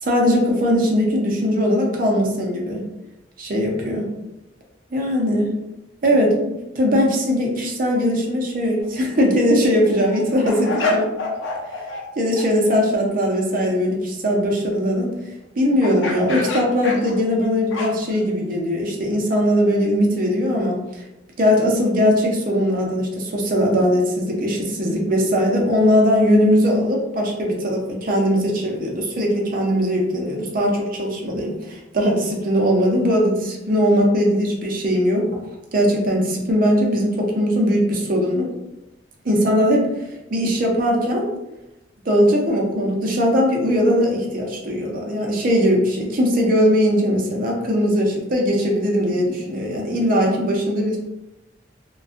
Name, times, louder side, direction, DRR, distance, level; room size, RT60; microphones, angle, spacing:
voice 1, 0.0-2.8 3.4-4.0 4.9-5.5 6.0-11.1 12.2-15.1 15.6-21.0 21.4-35.3 35.7-38.5 39.2-39.9 40.3-41.3 42.1-51.0, equal, 50° right, 0 dB, 0.6 m, -20 dB
sound 1, 8.8-9.0 9.5-12.1 12.4-12.5 15.8-18.2, left 2 dB, 90° left, 0.5 m, -28 dB
2.5 x 2.2 x 2.4 m, 0.94 s
head